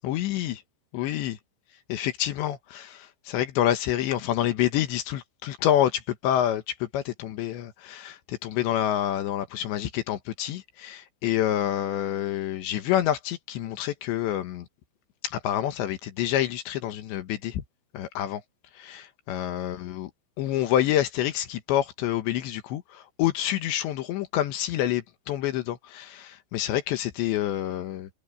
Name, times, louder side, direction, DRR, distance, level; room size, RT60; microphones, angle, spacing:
voice 1, 0.0-0.6 0.9-1.4 1.9-14.7 15.2-17.6 17.9-18.4 18.7-20.1 20.4-28.1, left 12 dB, 70° left, 3.2 m, -27 dB
omnidirectional pair, 5.8 m